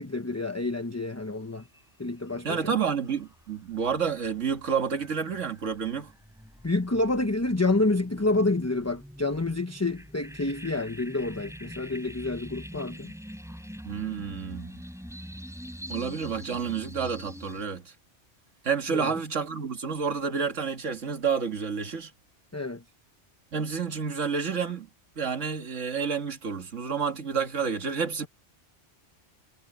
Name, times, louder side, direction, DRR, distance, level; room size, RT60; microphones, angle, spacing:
voice 1, 0.0-1.7 2.0-2.7 6.6-13.1 18.9-19.1 22.5-22.8, left 2 dB, 15° left, 0.9 m, -28 dB
sound 1, 1.6-1.8 2.2-17.7, equal, ahead, 5.5 m, -45 dB
voice 2, 2.4-6.1 13.9-14.8 15.9-17.9 18.6-22.1 23.5-24.9 25.2-28.3, right 6 dB, 90° right, 2.1 m, -29 dB
omnidirectional pair, 1.2 m